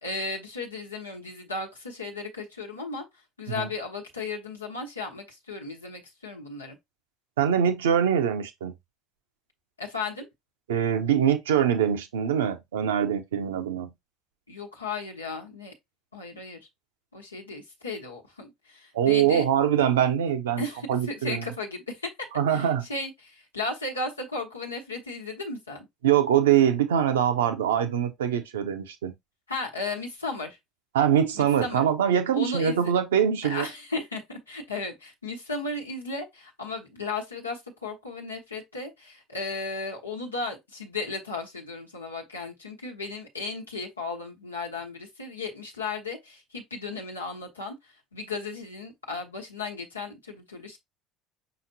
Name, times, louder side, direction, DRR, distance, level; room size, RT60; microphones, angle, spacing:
voice 1, 0.0-3.0 3.4-6.8 9.8-10.3 14.5-15.7 16.1-16.6 17.1-19.5 20.6-22.1 22.5-25.9 29.5-30.6 31.3-31.8 32.3-32.9 33.4-50.8, left 3 dB, 85° left, 1.1 m, -35 dB
voice 2, 7.4-8.7 10.7-13.9 18.9-20.6 20.9-21.4 22.4-22.8 26.0-29.1 30.9-33.7, right 9 dB, 70° right, 0.7 m, -23 dB
5.6 x 2.9 x 2.7 m
figure-of-eight pair, 60°, 0 cm